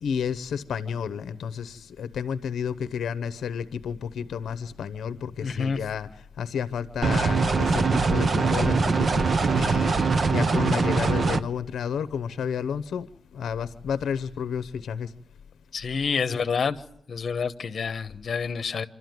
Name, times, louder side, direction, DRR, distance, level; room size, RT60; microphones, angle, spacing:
voice 1, 0.0-6.1 6.4-9.3 9.5-13.1 13.3-15.1, left 7 dB, 70° left, 0.8 m, -31 dB
voice 2, 5.4-5.8 15.7-16.8 17.1-18.9, left 5 dB, 40° left, 1.1 m, -28 dB
sound 1, 7.0-11.4, right 4 dB, 35° right, 0.8 m, -22 dB
27.0 x 12.5 x 9.4 m
wide cardioid pair, 150°, 0 cm